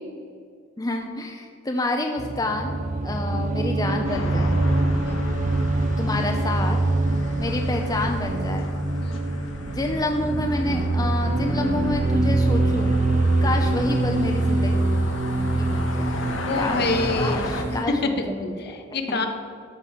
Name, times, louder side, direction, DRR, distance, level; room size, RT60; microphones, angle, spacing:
voice 1, 0.8-4.6 6.0-6.8 7.4-8.7 9.7-12.9 13.4-14.7 15.6-16.2 16.6-18.7 19.1-19.3, left 2 dB, 20° left, 2 dB, 0.7 m, -28 dB
sound 1, 2.2-17.8, right 2 dB, 40° right, 0.7 m, -24 dB
sound 2, 4.0-17.6, left 2 dB, 75° left, 1.6 m, -34 dB
voice 2, 9.0-9.3 16.4-17.5 17.9-18.2 18.6-19.3, left 3 dB, 55° left, 5 dB, 1.3 m, -26 dB
13.0 x 6.2 x 7.5 m, 2.2 s
head